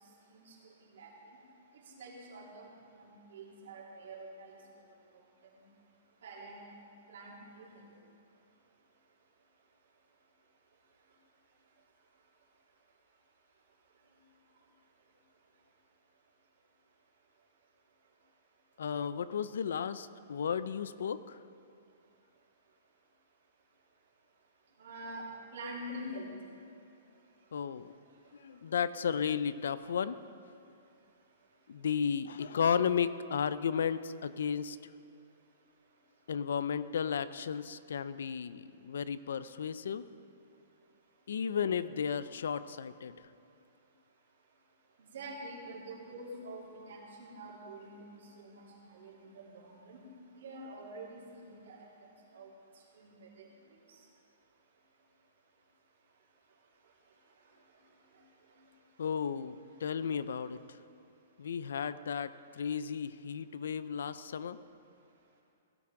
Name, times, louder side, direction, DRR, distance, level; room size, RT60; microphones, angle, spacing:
voice 1, 0.3-1.1 1.7-4.6 6.2-6.6 7.1-7.8 24.8-25.2 25.5-26.3 45.0-50.0 50.3-51.9 52.3-52.5 52.9-53.5, right 1 dB, 65° right, -4 dB, 3.6 m, -46 dB
voice 2, 18.8-21.4 27.5-27.9 28.3-30.2 31.7-34.8 36.3-40.1 41.3-43.2 59.0-60.6 61.4-64.6, left 7 dB, 75° left, 15 dB, 0.5 m, -34 dB
17.5 x 12.0 x 3.9 m, 2.5 s
hypercardioid pair, 175°, 0 cm